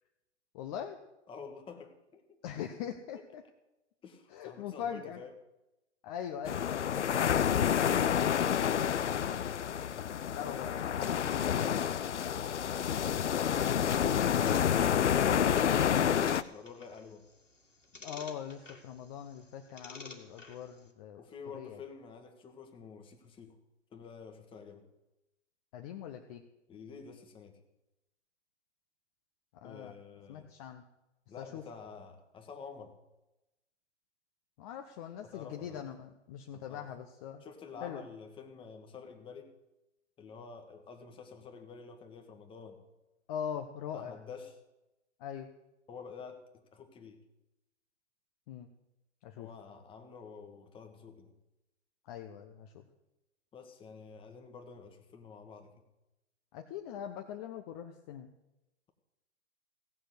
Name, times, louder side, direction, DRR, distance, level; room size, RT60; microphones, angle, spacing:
voice 1, 0.5-1.0 2.4-3.4 4.3-5.2 6.0-6.9 8.7-9.6 10.3-12.1 18.0-21.2 21.5-21.8 25.7-26.4 29.6-29.9 30.3-30.8 31.4-31.6 34.6-37.4 37.8-38.0 43.3-44.1 45.2-45.5 48.5-48.7 49.2-49.5 52.1-52.8 56.5-58.3, left 9 dB, 30° left, 4 dB, 1.0 m, -42 dB
voice 2, 1.3-2.4 4.0-5.3 9.9-10.2 16.5-17.3 21.2-23.6 23.9-24.8 26.7-27.6 29.6-30.5 31.3-33.0 35.2-35.8 36.5-36.9 37.4-39.5 40.2-42.8 43.9-44.6 45.9-47.2 49.4-51.3 53.5-55.7, left 5 dB, 15° left, 5 dB, 1.7 m, -49 dB
sound 1, 6.5-16.4, left 8 dB, 70° left, 0.7 m, -29 dB
sound 2, 15.9-20.9, left 3 dB, 90° left, 2.3 m, -53 dB
17.0 x 6.5 x 7.9 m, 0.95 s
figure-of-eight pair, 120°, 36 cm